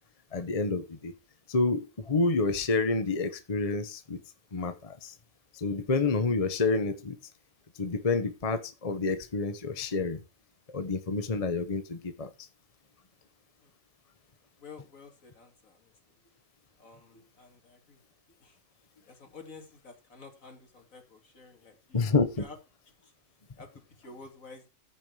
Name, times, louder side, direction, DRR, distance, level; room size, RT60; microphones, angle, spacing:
voice 1, 0.3-1.1 1.5-4.2 4.5-5.1 5.5-7.2 7.7-10.2 10.7-12.5 21.9-22.4, left 3 dB, 30° left, 10 dB, 1.0 m, -29 dB
voice 2, 14.6-16.2 16.8-18.0 18.3-18.6 19.0-22.6 22.9-23.1 23.5-24.7, left 4 dB, 75° left, 4 dB, 3.0 m, -51 dB
14.5 x 5.7 x 4.7 m, 0.27 s
omnidirectional pair, 1.4 m